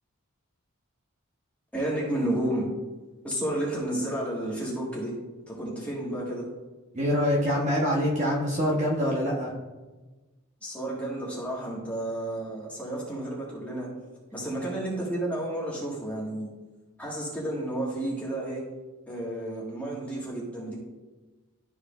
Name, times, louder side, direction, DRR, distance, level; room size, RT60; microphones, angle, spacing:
voice 1, 1.7-2.7 3.2-5.1 5.5-6.4 10.6-13.9 14.3-16.5 17.0-18.6 19.1-20.8, right 1 dB, 5° left, -5 dB, 1.6 m, -31 dB
voice 2, 6.9-9.5, equal, 30° right, -3 dB, 1.0 m, -25 dB
12.0 x 4.7 x 2.4 m, 1.2 s
head